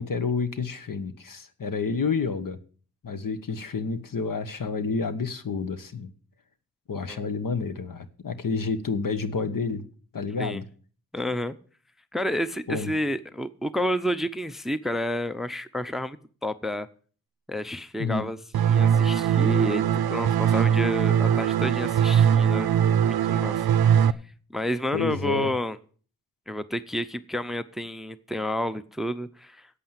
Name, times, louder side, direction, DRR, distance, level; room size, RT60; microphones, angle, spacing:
voice 1, 0.0-2.6 3.0-6.1 6.9-9.8 10.1-10.6 12.7-12.9 18.0-18.3 24.9-25.5, left 4 dB, 60° left, 11 dB, 1.2 m, -29 dB
voice 2, 11.1-11.5 12.1-16.2 16.4-16.9 17.5-19.8 20.1-23.0 23.3-23.5 24.0-24.2 24.5-25.8 26.5-29.7, equal, ahead, 14 dB, 0.7 m, -30 dB
sound 1, 18.5-24.1, right 9 dB, 75° right, 0.6 m, -21 dB
8.5 x 8.1 x 7.5 m, 0.44 s
cardioid pair, 45°, 37 cm